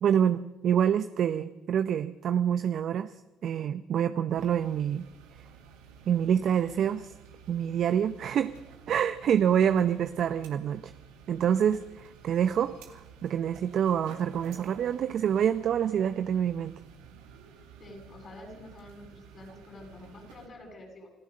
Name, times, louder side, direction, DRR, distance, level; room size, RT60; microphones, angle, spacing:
voice 1, 0.0-3.1 3.4-5.1 6.1-7.1 7.5-8.5 8.9-10.9 11.3-16.8, right 9 dB, 65° right, 11 dB, 0.7 m, -26 dB
sound 1, 4.3-20.5, right 7 dB, 90° right, 2.5 m, -52 dB
voice 2, 17.8-21.1, left 2 dB, 50° left, 0 dB, 7.6 m, -48 dB
27.5 x 14.5 x 6.5 m, 1.0 s
supercardioid pair, 65°, 0 cm